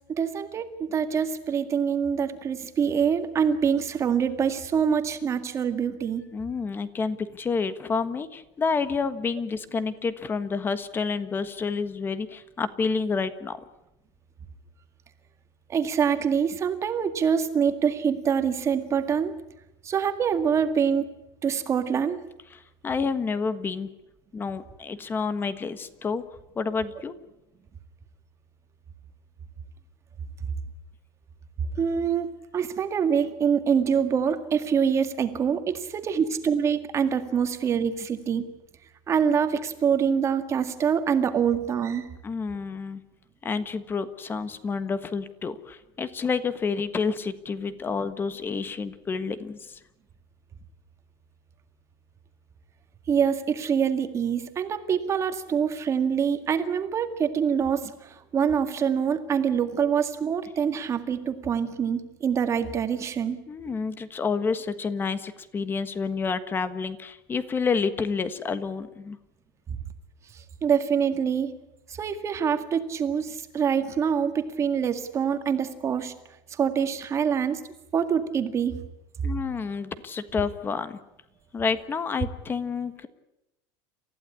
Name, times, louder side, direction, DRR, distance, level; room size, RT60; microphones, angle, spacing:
voice 1, 0.1-6.2 15.7-19.4 19.8-21.1 21.4-22.2 31.8-32.3 32.5-38.4 39.1-42.1 53.1-63.4 69.7-69.8 70.3-71.5 71.9-76.1 76.5-77.6 77.9-78.8, right 7 dB, 25° right, 8 dB, 1.9 m, -25 dB
voice 2, 6.3-13.6 22.5-23.9 24.3-26.2 26.5-27.1 42.2-43.0 43.4-49.8 63.5-69.2 79.2-81.0 81.5-83.1, left 5 dB, 20° left, 12 dB, 1.4 m, -29 dB
29.0 x 15.5 x 9.8 m, 0.91 s
cardioid pair, 160°, 12 cm